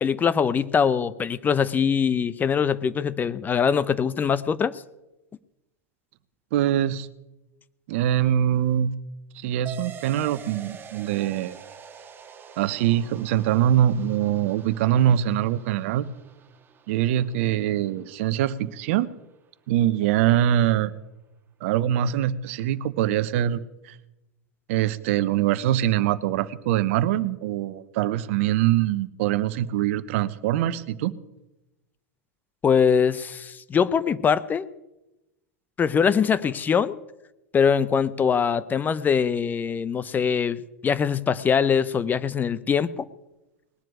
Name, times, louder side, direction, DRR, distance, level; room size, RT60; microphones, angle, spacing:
voice 1, 0.0-4.8 32.6-34.7 35.8-36.9 37.5-43.1, left 6 dB, 20° left, 16 dB, 0.7 m, -22 dB
voice 2, 6.5-7.1 7.9-9.0 9.3-11.6 12.6-16.1 16.9-19.1 19.7-20.9 21.6-24.0 24.7-31.1, right 11 dB, 60° right, 15 dB, 0.9 m, -23 dB
sound 1, 9.7-18.7, right 7 dB, 25° right, 1.9 m, -46 dB
20.0 x 7.6 x 9.4 m, 0.98 s
hypercardioid pair, 95°, 8 cm